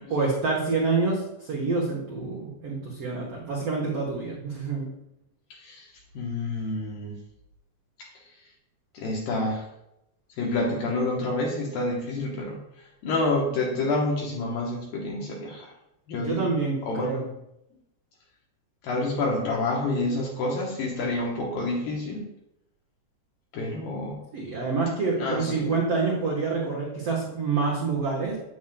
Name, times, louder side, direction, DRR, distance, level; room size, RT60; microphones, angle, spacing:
voice 1, 0.1-4.9 16.1-17.3 24.3-28.4, right 4 dB, 85° right, -4 dB, 1.3 m, -27 dB
voice 2, 5.6-5.9 6.1-7.2 8.9-9.6 10.4-15.7 16.1-16.5 16.8-17.3 18.8-22.2 23.5-24.2 25.1-25.7, left 2 dB, 70° left, -2 dB, 2.5 m, -28 dB
9.2 x 8.5 x 2.2 m, 0.84 s
omnidirectional pair, 4.7 m